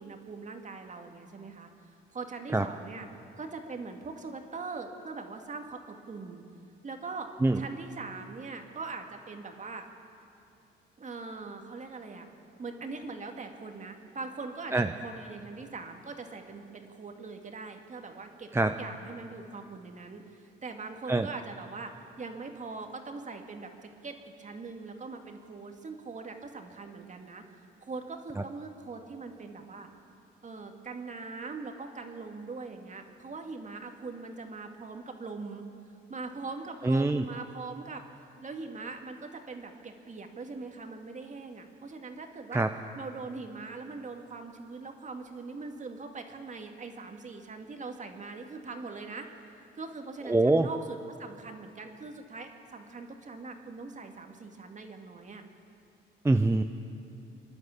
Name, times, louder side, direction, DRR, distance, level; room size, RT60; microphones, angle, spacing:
voice 1, 0.0-1.7 2.1-3.1 3.4-6.4 6.8-7.3 7.6-9.8 11.0-12.3 12.6-21.9 22.2-27.4 27.8-29.9 30.4-35.6 36.1-38.0 38.4-42.6 43.0-49.3 49.8-55.4, right 4 dB, 40° right, 4 dB, 2.2 m, -41 dB
voice 2, 36.8-37.2 42.5-42.7 50.3-50.7 56.2-56.6, right 2 dB, 15° right, 7 dB, 0.7 m, -24 dB
28.0 x 11.5 x 8.5 m, 2.7 s
cardioid pair, 90°, 20 cm